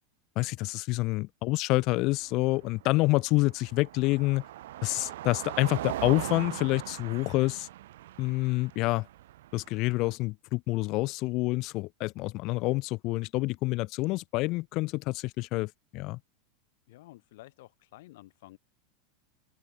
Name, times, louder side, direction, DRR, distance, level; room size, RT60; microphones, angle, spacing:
voice 1, 0.4-4.4 4.8-7.7 8.2-9.1 9.5-16.2, left 22 dB, 45° left, 0.3 m, -28 dB
Car passing by, 1.9-10.1, right 14 dB, 80° right, 1.5 m, -40 dB
voice 2, 16.9-18.6, left 18 dB, 70° left, 1.1 m, -51 dB
supercardioid pair, 145°, 0 cm